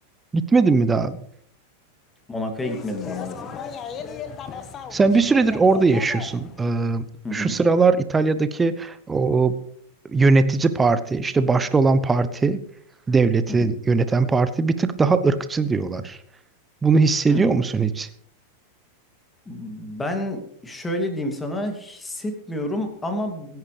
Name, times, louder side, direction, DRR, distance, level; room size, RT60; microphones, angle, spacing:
voice 1, 0.3-1.2 4.9-7.1 7.3-9.6 10.1-12.6 13.1-16.2 16.8-18.1, right 4 dB, 15° right, 12 dB, 1.0 m, -20 dB
voice 2, 2.3-3.4 7.2-7.5 13.5-13.7 17.3-17.5 19.5-23.6, left 1 dB, 10° left, 4 dB, 2.7 m, -29 dB
sound 1, 2.6-6.7, left 7 dB, 30° left, 1.5 m, -36 dB
25.5 x 10.5 x 3.4 m, 0.69 s
figure-of-eight pair, 90°, 0 cm